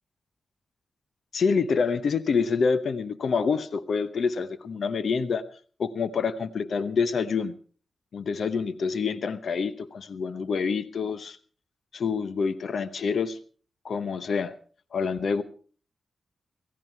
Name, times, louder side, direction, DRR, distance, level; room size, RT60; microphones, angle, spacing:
voice 1, 1.3-5.5 5.8-7.5 8.1-11.4 11.9-13.4 13.8-14.5 14.9-15.4, left 5 dB, 70° left, 14 dB, 0.9 m, -27 dB
16.5 x 16.0 x 4.6 m, 0.41 s
supercardioid pair, 45°, 0 cm